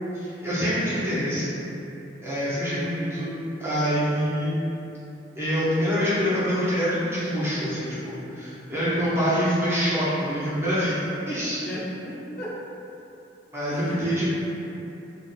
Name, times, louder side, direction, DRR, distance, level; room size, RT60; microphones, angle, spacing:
voice 1, 0.1-1.5 2.2-3.3 3.6-4.6 5.4-11.0 11.3-11.6 13.5-14.3, equal, 15° right, -11 dB, 0.6 m, -25 dB
voice 2, 11.6-12.6 13.7-14.3, equal, 55° left, -8 dB, 0.7 m, -36 dB
2.4 x 2.1 x 3.9 m, 2.8 s
head